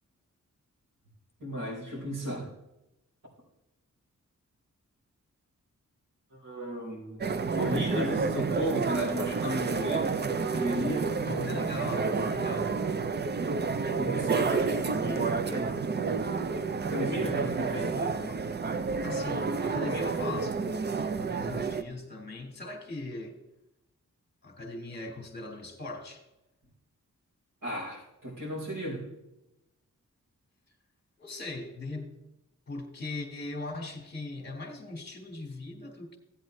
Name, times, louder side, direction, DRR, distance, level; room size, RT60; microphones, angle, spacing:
voice 1, 1.4-2.5 6.4-11.1 14.0-14.9 15.2-15.7 16.9-17.9 27.6-29.0, equal, 85° right, -5 dB, 4.5 m, -34 dB
sound 1, 7.2-21.8, right 4 dB, 35° right, 0.5 m, -30 dB
voice 2, 11.2-12.7 14.5-15.4 17.3-18.5 19.0-20.6 21.2-23.4 24.4-26.2 31.2-32.1 32.7-36.2, left 2 dB, 35° left, 3 dB, 1.5 m, -39 dB
15.5 x 8.9 x 3.1 m, 0.94 s
wide cardioid pair, 145°, 31 cm